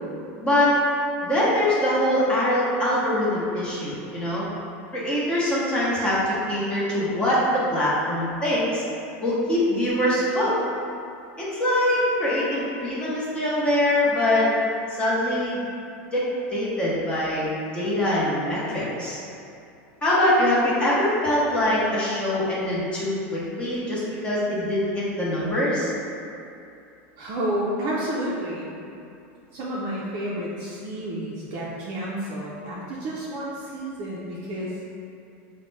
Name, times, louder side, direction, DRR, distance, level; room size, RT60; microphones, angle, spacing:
voice 1, 0.4-0.7 1.2-4.4 4.9-8.8 9.2-10.5 11.4-14.5 15.0-15.6 16.1-16.2 16.5-19.2 20.0-25.9, left 1 dB, 15° left, -8 dB, 0.8 m, -23 dB
voice 2, 27.2-28.7 29.5-34.8, right 1 dB, 45° right, -6 dB, 0.5 m, -30 dB
4.9 x 2.1 x 3.2 m, 2.6 s
supercardioid pair, 160°, 7 cm